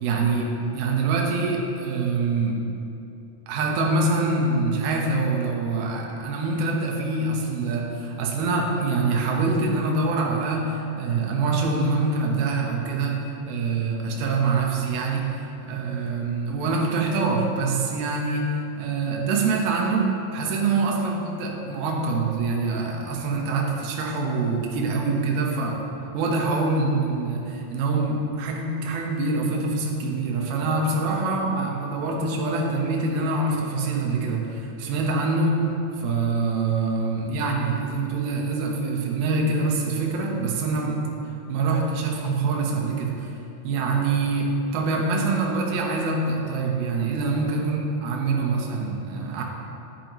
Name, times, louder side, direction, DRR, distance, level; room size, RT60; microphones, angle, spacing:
voice 1, 0.0-2.7 3.5-25.8 26.1-35.7 36.0-41.1 41.5-43.3 43.6-49.4, right 3 dB, 70° right, 0 dB, 2.5 m, -25 dB
10.5 x 9.2 x 3.0 m, 2.8 s
omnidirectional pair, 5.3 m